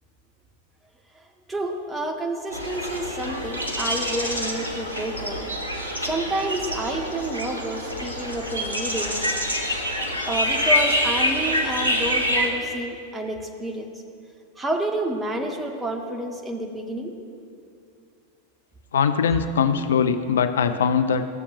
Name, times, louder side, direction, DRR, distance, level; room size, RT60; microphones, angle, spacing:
voice 1, 1.5-5.5 6.0-9.2 10.2-13.9 14.6-17.1, right 1 dB, 10° right, 2 dB, 0.9 m, -29 dB
sound 1, 2.5-12.5, equal, 85° right, 1.0 m, -26 dB
voice 2, 18.9-21.3, left 6 dB, 65° left, 10 dB, 0.3 m, -21 dB
14.5 x 7.0 x 2.5 m, 2.4 s
figure-of-eight pair, 90°, 0 cm